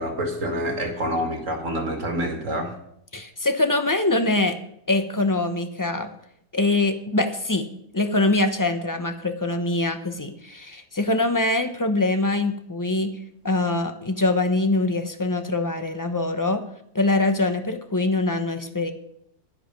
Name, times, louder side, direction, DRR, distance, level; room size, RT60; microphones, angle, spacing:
voice 1, 0.0-2.7, equal, 55° right, 4 dB, 2.3 m, -27 dB
voice 2, 3.1-4.6 4.9-6.1 6.5-7.7 7.9-13.1 13.4-16.6 16.9-18.9, left 2 dB, 20° left, 7 dB, 0.6 m, -23 dB
11.0 x 10.0 x 5.2 m, 0.71 s
omnidirectional pair, 1.6 m